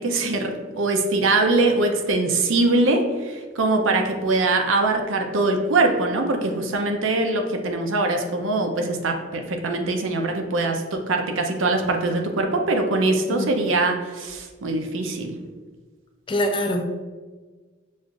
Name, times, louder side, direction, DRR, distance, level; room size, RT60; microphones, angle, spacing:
voice 1, 0.0-15.4, right 2 dB, 75° right, 4 dB, 0.5 m, -22 dB
voice 2, 16.3-17.0, equal, 25° left, 3 dB, 0.4 m, -25 dB
6.2 x 2.5 x 2.4 m, 1.4 s
head